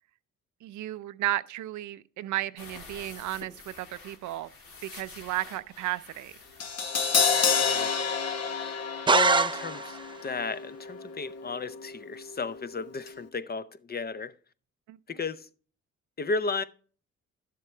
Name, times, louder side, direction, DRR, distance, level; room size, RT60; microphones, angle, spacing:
voice 1, 0.6-4.5 4.8-6.3 14.9-15.0, right 15 dB, 75° right, 0.5 m, -33 dB
sound 1, 2.6-7.8 8.1-8.2 8.5-8.6, left 4 dB, 80° left, 2.1 m, -49 dB
Crash cymbal, 6.6-12.8 13.0-13.2, left 6 dB, 55° left, 1.0 m, -30 dB
voice 2, 9.1-14.3 15.1-15.5 16.2-16.6, left 4 dB, 35° left, 0.7 m, -33 dB
sound 2, 9.1-10.2, right 4 dB, 15° right, 0.5 m, -24 dB
11.0 x 7.4 x 3.2 m
supercardioid pair, 60°, 29 cm